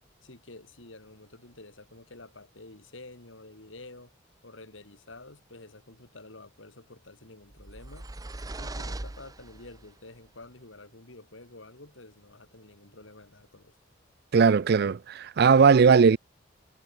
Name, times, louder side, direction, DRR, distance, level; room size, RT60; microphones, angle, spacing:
voice 1, 0.2-4.1 4.4-8.1 8.6-13.7, left 2 dB, 80° left, 3.5 m, -49 dB
sound 1, 7.5-9.9, right 2 dB, 20° right, 0.7 m, -39 dB
voice 2, 14.3-16.2, right 5 dB, 55° right, 0.4 m, -19 dB
head